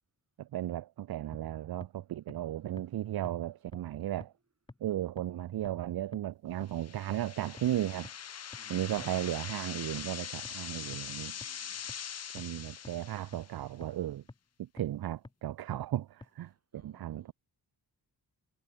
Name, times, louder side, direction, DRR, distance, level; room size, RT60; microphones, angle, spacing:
voice 1, 0.4-4.3 4.8-8.1 8.7-11.3 12.3-14.2 14.6-17.3, right 12 dB, 65° right, 0.5 m, -35 dB
sound 1, 1.3-1.4 1.8-1.9 2.3-2.4 2.8-2.9 3.2-3.3 3.7-3.8 4.2-4.3 4.7-4.8 5.2-5.3 5.6-5.7 6.1-6.2 6.6-6.7 7.1-7.2 7.6-7.7 8.0-8.1 8.5-8.6 9.0-9.1 9.5-9.6 10.0-10.1 10.4-10.5 10.9-11.0 11.4-11.5 11.9-12.0 12.4-12.5 12.8-12.9 13.3-13.4 13.8-13.9 14.3-14.4 14.8-14.9 15.2-15.3 15.7-15.8 16.2-16.3, left 2 dB, 10° left, 0.8 m, -47 dB
sound 2, 6.7-13.6, left 8 dB, 40° left, 0.6 m, -43 dB
voice 2, 8.6-9.0 11.2-11.9 16.5-17.3, right 5 dB, 40° right, 3.5 m, -62 dB
wide cardioid pair, 125°, 41 cm